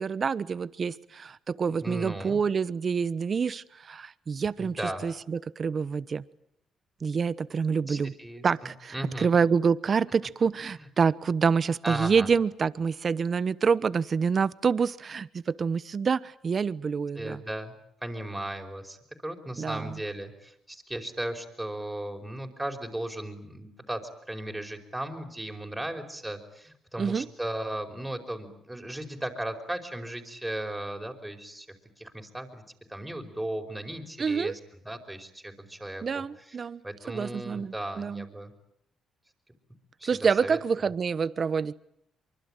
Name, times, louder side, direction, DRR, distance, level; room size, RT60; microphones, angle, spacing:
voice 1, 0.0-6.2 7.0-8.1 8.4-17.4 19.6-20.0 27.0-27.3 34.2-34.5 36.0-36.8 37.1-38.2 40.0-41.7, right 5 dB, 45° right, 1.1 m, -27 dB
voice 2, 1.8-2.4 4.6-5.0 7.9-8.5 8.9-9.3 10.8-10.9 11.8-12.3 17.1-17.8 18.0-19.0 19.2-24.0 24.3-31.7 32.0-32.6 32.9-34.6 34.8-36.6 36.8-38.5 40.0-40.6, right 1 dB, 5° right, 5.1 m, -36 dB
24.5 x 24.5 x 9.1 m
cardioid pair, 90°, 0 cm